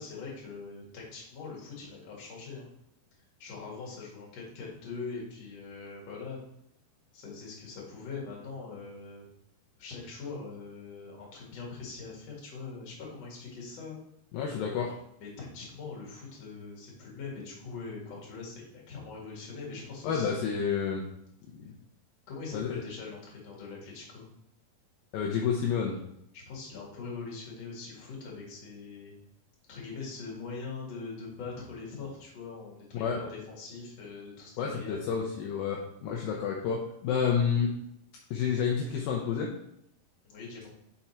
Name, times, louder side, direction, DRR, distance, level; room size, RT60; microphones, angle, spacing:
voice 1, 0.0-2.7 3.4-6.4 7.1-9.2 9.8-14.0 15.2-20.7 22.3-24.3 26.3-29.1 29.7-35.0 40.2-40.7, left 4 dB, 50° left, -3 dB, 2.5 m, -42 dB
voice 2, 14.3-14.9 20.0-21.0 21.7-21.8 22.5-22.8 25.1-26.0 32.9-33.2 34.6-37.7 38.3-39.5, left 7 dB, 80° left, -1 dB, 2.2 m, -29 dB
5.9 x 5.2 x 4.3 m, 0.76 s
omnidirectional pair, 4.9 m